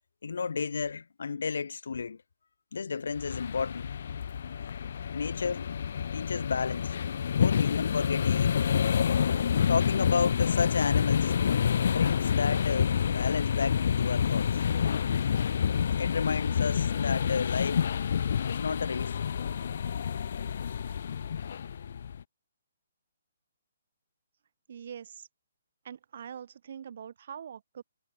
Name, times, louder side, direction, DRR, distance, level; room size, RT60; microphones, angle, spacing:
voice 1, 0.2-2.2 2.7-3.9 5.1-5.8 6.1-6.9 7.3-8.7 9.7-11.3 11.8-14.6 16.0-17.9 18.5-19.2, left 5 dB, 75° left, 2.9 m, -32 dB
sound 1, 3.2-22.2, left 8 dB, 60° left, 0.8 m, -28 dB
voice 2, 24.7-25.3 25.8-27.8, right 8 dB, 55° right, 2.7 m, -43 dB
hypercardioid pair, 155°, 0 cm